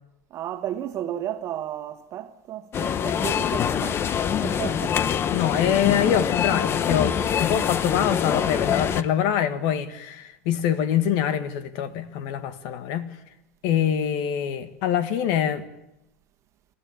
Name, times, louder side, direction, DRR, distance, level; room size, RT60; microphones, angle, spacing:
voice 1, 0.3-4.1 4.4-5.0 12.2-12.3, right 11 dB, 40° right, 1.6 m, -33 dB
sound 1, 2.7-9.0, left 8 dB, 30° left, 0.9 m, -24 dB
voice 2, 5.3-13.1 13.6-15.7, left 9 dB, 60° left, 1.7 m, -24 dB
29.5 x 11.5 x 8.7 m
supercardioid pair, 110°, 7 cm